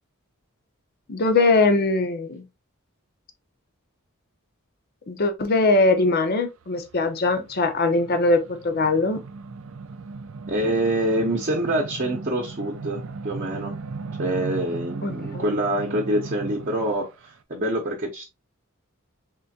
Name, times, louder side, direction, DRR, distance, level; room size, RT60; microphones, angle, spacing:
voice 1, 1.1-2.5 5.1-9.2 15.0-15.4, left 3 dB, 50° left, 0.7 m, -21 dB
sound 1, 6.6-17.0, right 4 dB, 70° right, 0.4 m, -37 dB
voice 2, 10.5-13.7 14.2-18.2, right 1 dB, 40° right, 0.8 m, -26 dB
3.7 x 3.3 x 2.7 m
head